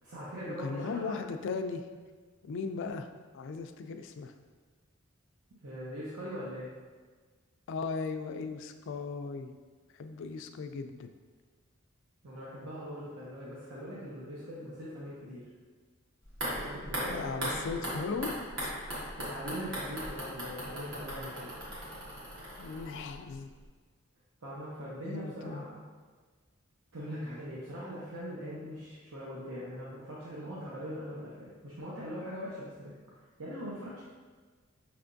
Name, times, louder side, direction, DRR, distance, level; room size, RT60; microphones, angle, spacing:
voice 1, 0.0-1.1 5.6-6.7 12.2-15.5 16.4-17.9 19.2-21.5 24.4-25.8 26.9-32.9 33.4-34.0, equal, 80° right, -8 dB, 0.8 m, -41 dB
voice 2, 0.6-1.8 2.4-4.3 7.7-9.5 9.9-11.1 17.1-18.3 18.6-18.8 22.6-23.5 25.0-25.7, left 4 dB, 60° left, 7 dB, 0.3 m, -37 dB
sound 1, 16.3-23.4 23.6-23.7, equal, 60° right, 1.4 m, -38 dB
5.6 x 3.3 x 2.6 m, 1.5 s
head